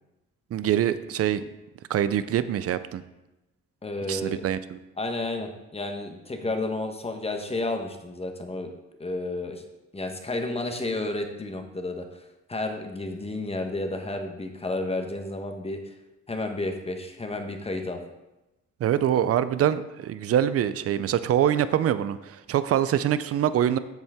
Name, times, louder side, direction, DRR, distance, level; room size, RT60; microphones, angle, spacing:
voice 1, 0.5-1.4 1.9-3.0 4.1-4.8 18.8-23.8, right 10 dB, 50° right, 14 dB, 0.5 m, -24 dB
voice 2, 3.8-4.4 5.0-8.7 9.0-9.6 9.9-12.2 12.5-15.9 16.3-18.0, left 2 dB, 20° left, 5 dB, 1.1 m, -31 dB
7.7 x 7.2 x 3.6 m, 0.99 s
cardioid pair, 90°, 30 cm